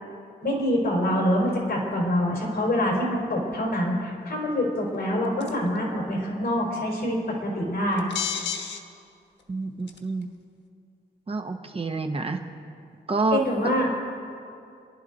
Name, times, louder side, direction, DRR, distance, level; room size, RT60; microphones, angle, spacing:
voice 1, 0.4-8.1 13.3-13.9, left 1 dB, 60° left, -2 dB, 4.1 m, -25 dB
sound 1, 5.4-5.7 8.0-8.8 9.4-9.5 9.9-10.2, left 8 dB, 85° left, 1.2 m, -30 dB
voice 2, 9.5-10.3 11.3-12.4 13.1-13.4, right 3 dB, 30° right, 5 dB, 0.9 m, -28 dB
28.0 x 11.5 x 3.9 m, 2.5 s
wide cardioid pair, 140°, 18 cm